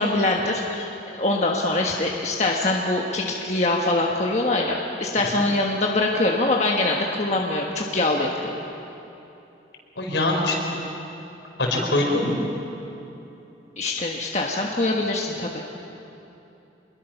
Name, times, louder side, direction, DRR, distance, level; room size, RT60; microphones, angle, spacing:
voice 1, 0.0-8.5 13.8-15.6, left 2 dB, 35° left, -1 dB, 1.4 m, -23 dB
voice 2, 10.0-10.8 11.6-12.4, left 2 dB, 75° left, 0 dB, 4.8 m, -23 dB
27.5 x 21.5 x 5.9 m, 2.9 s
head